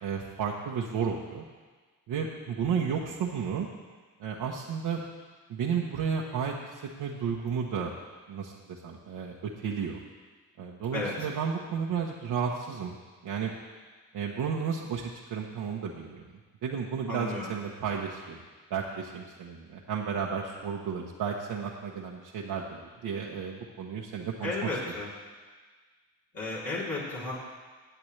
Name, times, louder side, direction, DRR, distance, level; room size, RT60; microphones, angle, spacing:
voice 1, 0.0-1.4 2.1-3.7 4.2-5.0 5.5-6.5 7.0-7.9 8.3-10.0 10.6-13.0 13.2-13.5 14.1-16.2 16.6-18.4 18.7-24.7, right 6 dB, 80° right, -3 dB, 1.1 m, -32 dB
voice 2, 17.1-17.5 24.4-25.1 26.3-27.3, left 2 dB, 60° left, -7 dB, 3.2 m, -33 dB
17.5 x 7.9 x 3.3 m, 1.4 s
cardioid pair, 65°, 38 cm